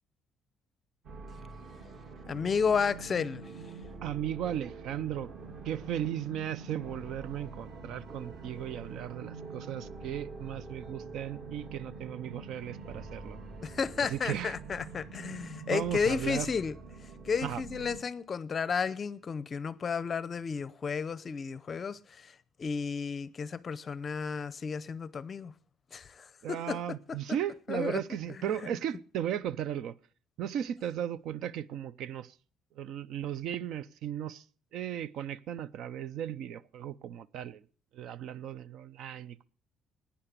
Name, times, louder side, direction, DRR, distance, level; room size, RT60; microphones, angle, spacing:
sound 1, 1.0-18.0, right 3 dB, 45° right, 2.9 m, -45 dB
voice 1, 2.3-3.5 13.6-16.8 17.2-25.5 25.9-27.2 27.7-28.0 28.3-28.7, left 5 dB, 30° left, 0.6 m, -33 dB
voice 2, 4.0-5.3 5.6-13.4 14.0-14.5 15.7-16.5 17.4-17.6 26.4-29.9 30.4-32.3 32.8-34.4 34.7-37.6 37.9-39.4, right 10 dB, 65° right, 0.7 m, -36 dB
16.0 x 9.9 x 6.8 m
cardioid pair, 170°, 0 cm